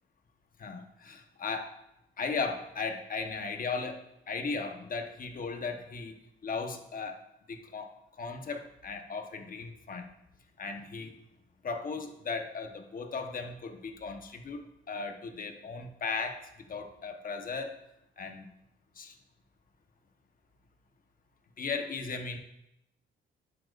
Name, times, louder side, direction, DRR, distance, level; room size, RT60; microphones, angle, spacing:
voice 1, 0.6-1.8 2.2-6.2 6.4-7.2 7.5-10.1 10.6-11.2 11.6-16.4 16.7-17.8 18.2-18.5 19.0-19.1 21.6-22.4, left 4 dB, 45° left, 5 dB, 1.1 m, -37 dB
10.5 x 7.8 x 2.5 m, 0.85 s
cardioid pair, 90°, 20 cm